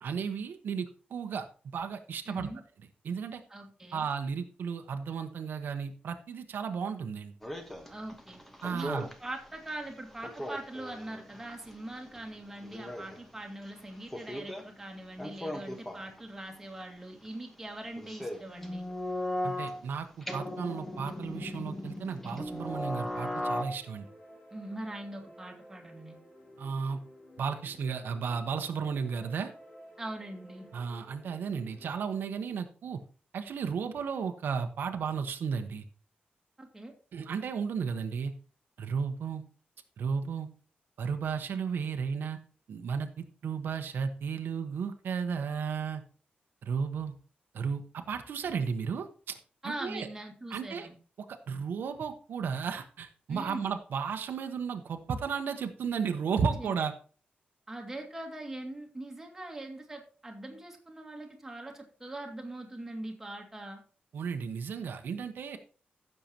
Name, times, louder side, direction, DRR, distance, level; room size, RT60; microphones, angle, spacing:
voice 1, 0.0-1.5 1.7-2.5 3.0-3.4 3.9-7.3 8.6-9.1 19.4-24.1 26.6-27.0 27.4-29.5 30.7-33.0 33.3-35.8 37.1-38.3 38.8-39.4 40.0-40.5 41.0-42.4 42.7-46.0 46.6-47.1 47.5-49.4 49.6-50.1 50.5-50.9 51.3-56.9 64.1-65.6, right 6 dB, 75° right, 6 dB, 1.0 m, -34 dB
voice 2, 2.3-2.6 3.5-4.1 7.9-8.4 8.7-18.9 24.5-26.2 30.0-30.7 36.6-36.9 49.6-50.9 53.3-53.7 56.6-56.7 57.7-63.8, right 1 dB, 10° right, 1 dB, 1.9 m, -42 dB
sound 1, 7.4-9.3 9.7-9.8 10.2-12.3 12.6-13.2 14.0-14.6 15.2-16.2 18.0-19.8 20.2-23.6, left 1 dB, 5° left, 1.2 m, -37 dB
sound 2, 20.7-31.9, equal, 40° left, 5.9 m, -54 dB
15.5 x 6.8 x 2.9 m, 0.39 s
wide cardioid pair, 180°, 3 cm